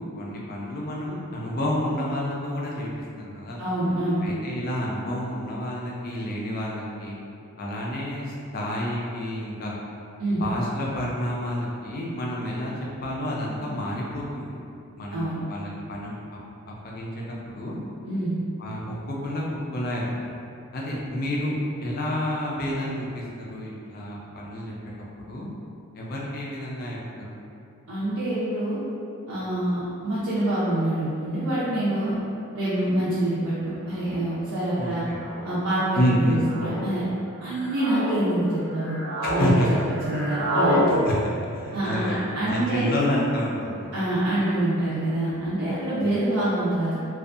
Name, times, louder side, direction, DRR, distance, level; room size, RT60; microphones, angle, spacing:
voice 1, 0.0-2.9 3.2-3.6 4.2-7.2 7.6-9.7 10.4-12.7 13.0-14.5 15.0-16.2 16.8-17.2 17.5-17.8 18.6-19.4 19.7-20.0 20.7-24.7 25.3-25.5 25.9-27.4 34.8-35.1 35.9-36.4 39.2-39.7 41.1-41.2 41.5-44.0 46.0-46.2, equal, 40° left, -4 dB, 0.4 m, -29 dB
voice 2, 3.6-4.2 10.2-10.4 15.1-15.4 18.0-18.4 27.9-28.8 29.3-32.2 32.5-35.0 35.4-37.0 37.4-39.0 39.3-39.8 40.0-41.0 41.7-42.9 43.9-46.9, right 1 dB, 70° right, -11 dB, 0.5 m, -26 dB
sound 1, 32.8-32.9 33.9-34.2 35.1-35.5 36.4-36.8 37.5-38.2 38.6-39.5 39.8-40.9, left 1 dB, 90° right, 1.0 m, -28 dB
2.6 x 2.3 x 2.4 m, 2.6 s
head